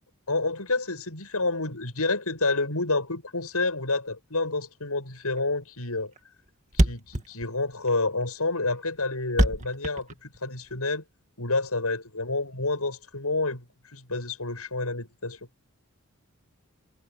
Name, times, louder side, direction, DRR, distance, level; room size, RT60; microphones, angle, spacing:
voice 1, 0.3-6.1 6.7-11.0 11.4-13.7 13.9-15.4, left 3 dB, 85° left, 7.6 m, -29 dB
Thump thud, 5.4-5.6 5.8-5.9 6.2-6.3 6.5-6.6 6.7-10.8, equal, 30° right, 2.1 m, -25 dB
head